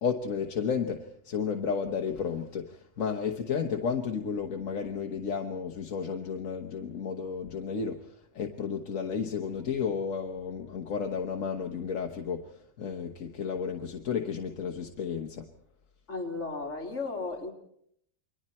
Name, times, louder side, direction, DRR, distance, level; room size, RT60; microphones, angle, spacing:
voice 1, 0.0-15.5, left 6 dB, 85° left, 3 dB, 1.7 m, -32 dB
voice 2, 16.1-17.5, left 3 dB, 65° left, 0 dB, 3.4 m, -34 dB
29.5 x 23.0 x 4.4 m, 0.70 s
omnidirectional pair, 1.3 m